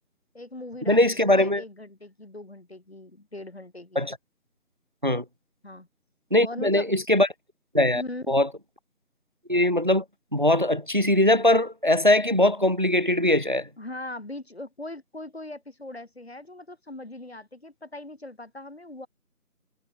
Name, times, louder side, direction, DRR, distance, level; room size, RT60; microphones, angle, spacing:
voice 1, 0.3-4.0 5.6-5.9 6.4-6.9 7.9-8.4 13.8-19.1, left 2 dB, 45° left, 7.3 m, -40 dB
voice 2, 0.9-1.6 3.9-4.2 5.0-5.2 6.3-7.3 7.7-8.0 8.3-8.5 9.5-10.0 10.3-13.7, left 1 dB, 35° right, 1.3 m, -21 dB
figure-of-eight pair, 175°, 45 cm